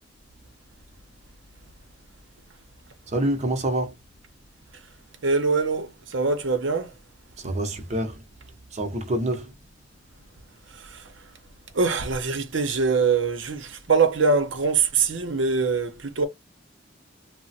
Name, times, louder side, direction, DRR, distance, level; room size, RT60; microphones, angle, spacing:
voice 1, 3.1-3.9 7.4-8.2 8.7-9.5, right 1 dB, 35° right, 0.7 m, -26 dB
voice 2, 5.2-6.9 10.7-11.0 11.7-16.3, right 4 dB, 70° right, 0.7 m, -23 dB
2.9 x 2.0 x 2.7 m
head